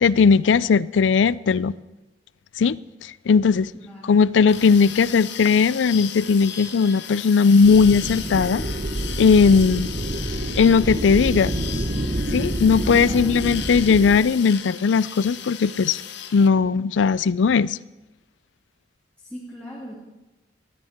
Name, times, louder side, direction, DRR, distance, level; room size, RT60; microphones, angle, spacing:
voice 1, 0.0-1.7 2.6-3.7 4.0-8.6 9.2-9.9 10.6-11.6 12.3-16.0 16.3-17.8, left 5 dB, 85° left, 0.4 m, -18 dB
voice 2, 3.7-4.2 12.8-13.5 19.2-19.9, equal, 5° left, 2.7 m, -39 dB
sound 1, 4.5-16.5, left 9 dB, 70° left, 1.1 m, -36 dB
sound 2, 7.6-14.2, right 1 dB, 40° right, 1.1 m, -28 dB
19.5 x 13.5 x 4.4 m
head